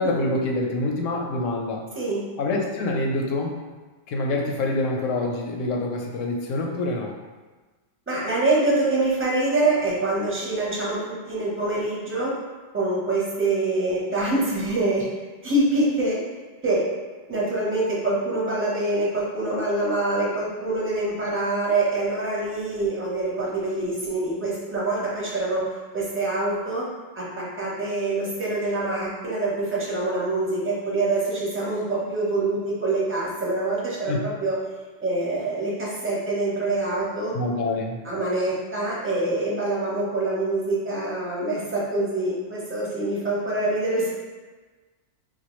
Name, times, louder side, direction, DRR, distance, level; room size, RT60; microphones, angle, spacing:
voice 1, 0.0-1.9 2.4-3.6 4.1-7.1 34.1-34.2 37.3-38.0, left 2 dB, 90° left, 1 dB, 1.0 m, -26 dB
voice 2, 8.1-12.3 12.7-15.1 15.4-16.2 16.6-16.8 17.3-25.7 25.9-26.9 27.1-34.6 35.0-37.3 38.0-44.1, right 2 dB, 10° right, -6 dB, 0.7 m, -25 dB
4.3 x 2.2 x 3.0 m, 1.3 s
omnidirectional pair, 1.3 m